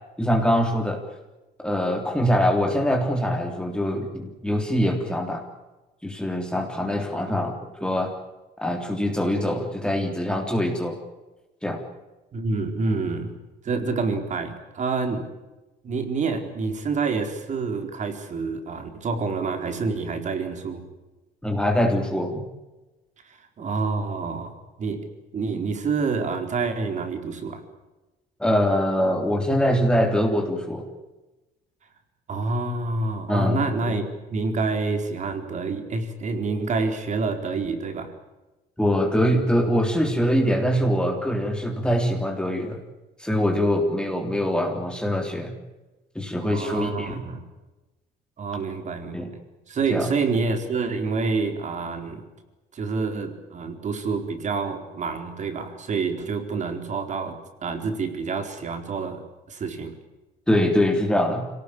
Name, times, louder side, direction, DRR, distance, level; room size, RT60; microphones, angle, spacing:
voice 1, 0.2-1.0 1.6-5.4 6.0-7.5 7.8-8.1 8.6-11.0 11.6-11.8 21.4-22.4 28.4-30.9 33.3-33.6 33.9-34.0 38.8-42.8 43.2-45.6 46.2-47.2 49.1-49.3 49.9-50.1 60.5-61.5, equal, 5° left, 2 dB, 3.5 m, -23 dB
voice 2, 12.3-13.4 13.6-15.3 15.8-20.9 23.3-25.0 25.3-27.6 32.3-38.1 46.4-47.4 48.4-49.3 49.7-52.2 52.7-59.9, right 4 dB, 45° right, 7 dB, 4.2 m, -28 dB
25.5 x 18.0 x 8.8 m, 1.1 s
cardioid pair, 110°, 17 cm